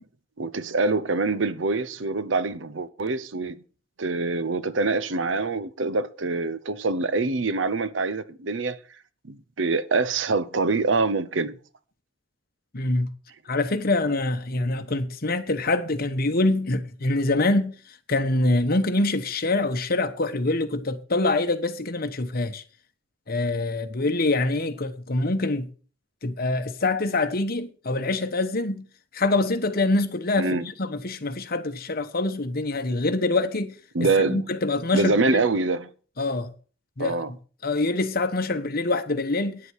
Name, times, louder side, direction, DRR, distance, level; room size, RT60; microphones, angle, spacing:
voice 1, 0.4-3.6 4.0-8.8 9.3-11.5 30.4-30.7 33.9-34.4 34.9-35.9 37.0-37.3, right 3 dB, 80° right, 0.8 m, -25 dB
voice 2, 12.7-13.1 13.5-17.7 18.1-22.6 23.3-25.7 26.2-28.8 29.1-33.7 34.0-35.4 36.2-36.5 37.0-37.2 37.6-39.6, left 2 dB, 55° left, 1.2 m, -25 dB
9.6 x 8.0 x 6.4 m
head